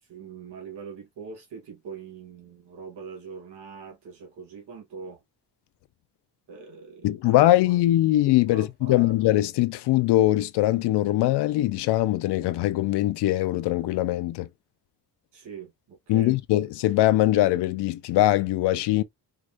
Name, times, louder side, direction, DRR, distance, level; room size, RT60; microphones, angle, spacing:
voice 1, 0.0-5.2 6.5-7.8 8.5-9.3 15.3-16.4, right 6 dB, 80° right, 2.4 m, -43 dB
voice 2, 7.0-14.5 16.1-19.0, left 15 dB, 85° left, 0.5 m, -22 dB
4.7 x 2.2 x 2.4 m
cardioid pair, 140°, 39 cm